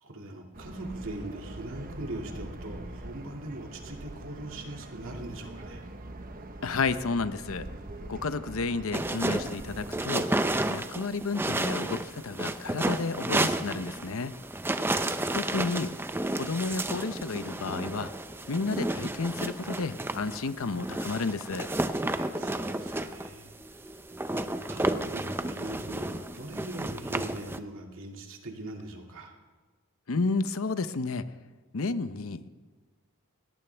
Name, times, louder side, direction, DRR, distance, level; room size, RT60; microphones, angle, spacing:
voice 1, 0.0-5.8 22.1-29.3, right 1 dB, 65° right, 1 dB, 2.4 m, -41 dB
sound 1, 0.5-10.0, right 1 dB, 40° right, 1.0 m, -43 dB
voice 2, 6.6-7.7 8.1-10.3 10.7-14.4 15.3-15.9 16.3-18.1 18.5-21.7 30.1-31.2 31.7-32.5, left 4 dB, 70° left, 12 dB, 0.7 m, -31 dB
sound 2, 8.9-27.6, right 1 dB, 10° right, 0.5 m, -32 dB
21.0 x 18.0 x 3.4 m, 1.4 s
head